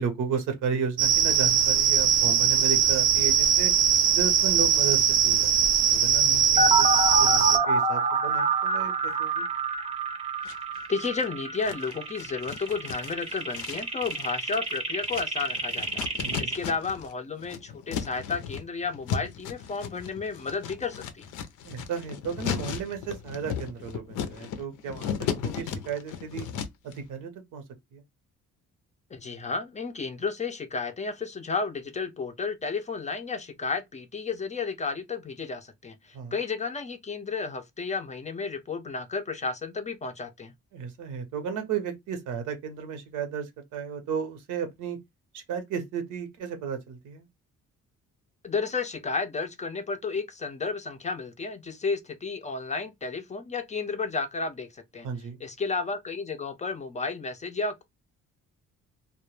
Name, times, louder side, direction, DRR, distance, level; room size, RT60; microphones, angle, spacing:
voice 1, 0.0-3.7 4.1-9.4 16.2-16.6 21.6-26.5 26.8-27.6 27.9-28.0 36.1-36.3 40.7-45.0 45.3-47.3 55.0-55.4, right 6 dB, 85° right, 0.8 m, -34 dB
sound 1, 1.0-7.6, right 8 dB, 65° right, 0.4 m, -21 dB
sound 2, 6.6-16.6, right 3 dB, 20° right, 0.6 m, -27 dB
sound 3, 10.4-11.2 11.6-17.1 17.4-26.9, left 8 dB, 85° left, 0.5 m, -36 dB
voice 2, 10.9-21.3 29.1-40.5 48.4-55.1 55.4-57.8, left 4 dB, 25° left, 0.4 m, -32 dB
2.1 x 2.1 x 3.0 m
cardioid pair, 90°, 30 cm